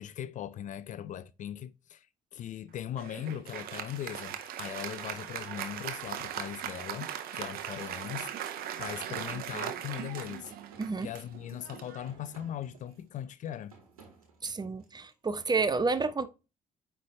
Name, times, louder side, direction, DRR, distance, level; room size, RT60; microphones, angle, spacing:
voice 1, 0.0-2.1 2.3-10.5 11.0-13.8, left 10 dB, 45° left, 0.5 m, -39 dB
Applause, 3.0-12.8, right 10 dB, 60° right, 0.9 m, -39 dB
sound 1, 8.8-15.1, right 4 dB, 85° right, 1.4 m, -58 dB
voice 2, 10.8-11.1 14.4-16.3, right 4 dB, 25° right, 0.7 m, -30 dB
9.3 x 3.3 x 3.1 m
figure-of-eight pair, 45°, 18 cm